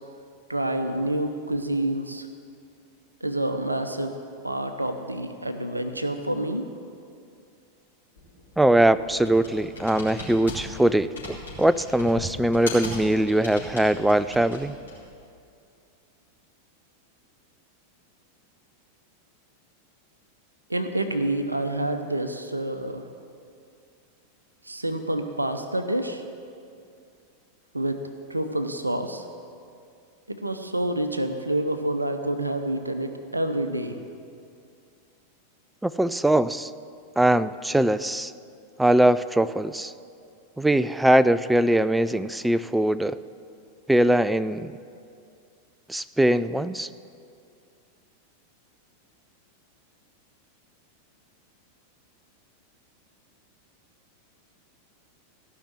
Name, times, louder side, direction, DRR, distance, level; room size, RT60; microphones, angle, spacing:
voice 1, 0.5-2.3 3.2-4.2 4.4-6.7 20.7-23.1 24.6-26.2 27.7-28.0 28.3-29.2 30.3-34.0, right 1 dB, 85° right, 8 dB, 0.7 m, -28 dB
Computer keyboard, 8.2-15.1, left 1 dB, 70° left, 3.4 m, -39 dB
voice 2, 8.6-14.8 35.8-36.7 37.2-38.3 38.8-39.9 40.6-43.2 43.9-44.8 45.9-46.9, right 1 dB, 5° right, 15 dB, 0.3 m, -21 dB
15.0 x 5.7 x 7.6 m, 2.4 s
figure-of-eight pair, 90°, 0 cm